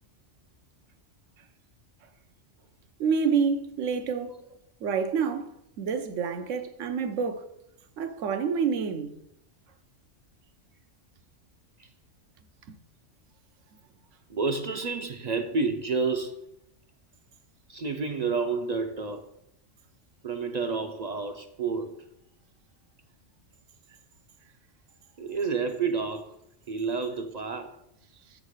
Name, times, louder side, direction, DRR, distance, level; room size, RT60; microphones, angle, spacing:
voice 1, 3.0-4.4 4.8-7.5 8.0-9.1, right 6 dB, 85° right, 1.1 m, -28 dB
voice 2, 14.3-16.4 17.7-19.3 20.2-22.0 25.2-26.4 26.7-27.8, right 4 dB, 50° right, 0.5 m, -30 dB
7.2 x 3.8 x 6.4 m
omnidirectional pair, 1.3 m